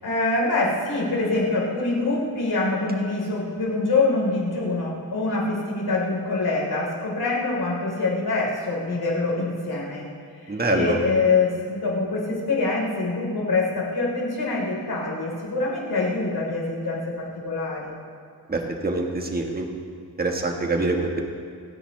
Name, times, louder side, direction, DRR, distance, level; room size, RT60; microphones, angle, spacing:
voice 1, 0.0-10.0 10.5-17.9, left 3 dB, 85° left, -4 dB, 4.0 m, -25 dB
voice 2, 10.5-11.0 18.5-19.7 20.2-21.2, right 2 dB, 25° right, 2 dB, 1.4 m, -25 dB
28.5 x 10.0 x 3.3 m, 2.3 s
wide cardioid pair, 150°, 37 cm